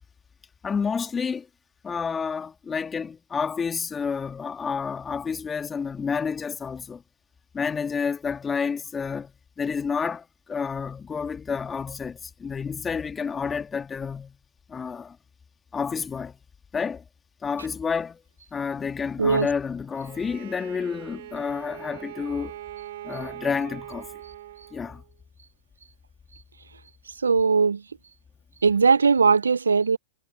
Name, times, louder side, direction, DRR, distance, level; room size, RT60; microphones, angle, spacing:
voice 1, 0.6-1.5 1.8-7.0 7.5-9.3 9.6-14.3 14.7-15.2 15.7-16.4 16.7-17.0 17.4-18.2 18.5-22.6 23.0-24.1 24.7-25.0, left 6 dB, 15° left, 2.4 m, -29 dB
Bowed string instrument, 19.9-25.1, right 14 dB, 60° right, 6.2 m, -41 dB
voice 2, 27.2-27.8 28.6-30.0, right 5 dB, 85° right, 1.2 m, -19 dB
hypercardioid pair, 105°, 0 cm